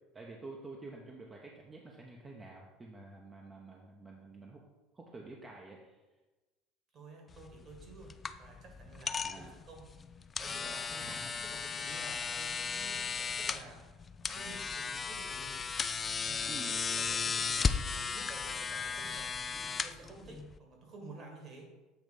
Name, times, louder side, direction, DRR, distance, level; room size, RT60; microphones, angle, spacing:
voice 1, 0.1-4.6 4.9-6.0 9.2-9.6 10.9-11.3 16.5-16.8, right 3 dB, 25° right, -1 dB, 0.9 m, -49 dB
voice 2, 6.9-9.9 10.1-11.2 11.4-15.6 16.1-19.3 19.7-21.7, right 3 dB, 45° right, 1 dB, 2.0 m, -52 dB
sound 1, 7.3-20.6, left 5 dB, 30° left, 0.4 m, -36 dB
8.1 x 3.1 x 5.2 m, 1.1 s
supercardioid pair, 95°, 0 cm